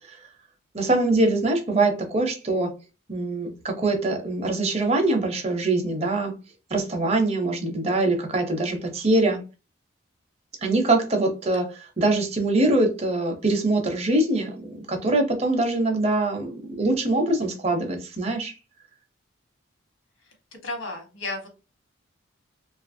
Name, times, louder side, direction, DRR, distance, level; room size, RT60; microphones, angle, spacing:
voice 1, 0.7-2.7 3.1-6.3 6.7-9.4 10.6-18.5, right 2 dB, 30° right, 4 dB, 0.6 m, -23 dB
voice 2, 20.6-21.5, left 2 dB, 80° left, 3 dB, 1.0 m, -33 dB
2.8 x 2.4 x 2.5 m, 0.31 s
head